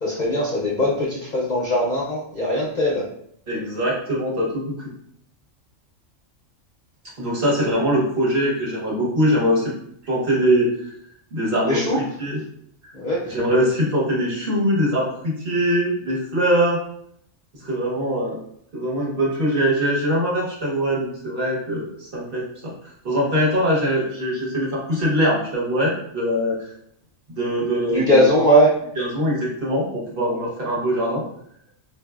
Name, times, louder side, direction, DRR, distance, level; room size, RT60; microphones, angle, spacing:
voice 1, 0.0-3.0 11.7-12.0 12.9-13.2 27.9-28.7, equal, 55° left, -4 dB, 0.5 m, -20 dB
voice 2, 3.5-4.6 7.2-9.7 10.0-10.9 11.3-12.4 12.8-12.9 13.3-16.8 17.6-18.4 18.7-22.4 23.0-26.6 27.3-28.3 29.0-31.2, equal, 45° right, -5 dB, 1.1 m, -22 dB
3.8 x 2.5 x 2.3 m, 0.70 s
omnidirectional pair, 1.3 m